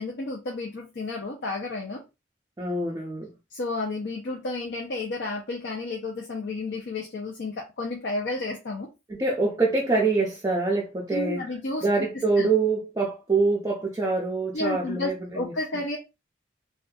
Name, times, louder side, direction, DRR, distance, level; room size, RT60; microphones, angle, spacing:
voice 1, 0.0-2.0 3.5-8.9 11.1-11.9 12.4-12.5 14.5-16.0, left 2 dB, 70° left, 0.5 m, -31 dB
voice 2, 2.6-3.3 9.1-11.4 11.8-15.4, right 3 dB, 20° right, 0.4 m, -25 dB
2.6 x 2.3 x 2.2 m
head